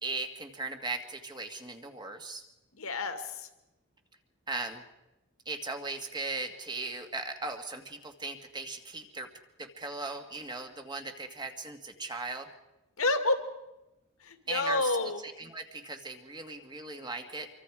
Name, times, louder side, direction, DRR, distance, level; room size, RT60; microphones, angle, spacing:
voice 1, 0.0-2.4 4.5-4.8 5.5-9.3 9.6-12.5 14.5-17.5, right 3 dB, 20° right, 5 dB, 1.9 m, -38 dB
voice 2, 2.8-3.5 13.0-13.4 14.2-15.2, left 2 dB, 70° left, 7 dB, 2.2 m, -29 dB
26.0 x 24.0 x 4.9 m, 0.95 s
head